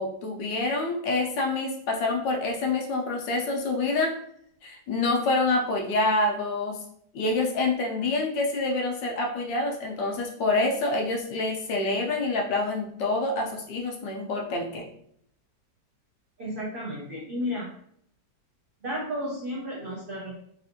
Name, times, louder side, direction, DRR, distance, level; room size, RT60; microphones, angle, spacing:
voice 1, 0.0-4.2 4.6-6.8 7.1-14.9, left 2 dB, 90° left, 1 dB, 1.4 m, -27 dB
voice 2, 16.4-17.7 18.8-20.3, equal, 80° right, -5 dB, 0.4 m, -32 dB
3.5 x 2.4 x 2.6 m, 0.69 s
omnidirectional pair, 1.9 m